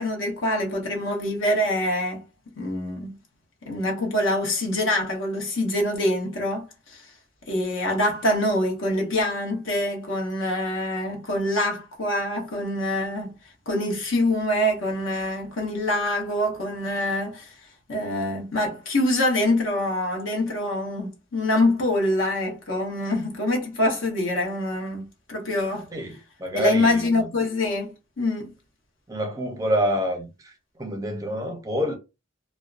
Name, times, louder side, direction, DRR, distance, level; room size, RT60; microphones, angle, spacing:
voice 1, 0.0-2.2 2.6-3.2 3.6-7.1 7.5-13.3 13.7-17.5 17.9-25.9 26.5-28.5, left 1 dB, 65° left, 1.0 m, -25 dB
voice 2, 25.9-27.3 29.1-32.0, equal, 15° right, 0.5 m, -27 dB
2.5 x 2.1 x 2.4 m
head